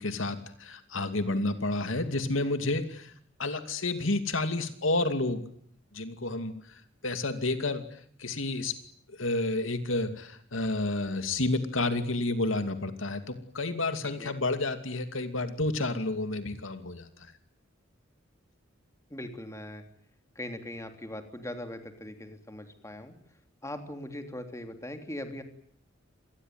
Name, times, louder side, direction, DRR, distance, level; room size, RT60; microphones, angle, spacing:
voice 1, 0.0-3.1 3.4-5.4 5.9-6.5 7.0-7.8 8.2-8.7 9.1-17.1, left 2 dB, 80° left, 9 dB, 2.6 m, -30 dB
voice 2, 19.1-19.8 20.3-23.1 23.6-25.4, left 1 dB, 15° left, 6 dB, 3.2 m, -40 dB
27.0 x 20.5 x 9.5 m, 0.62 s
head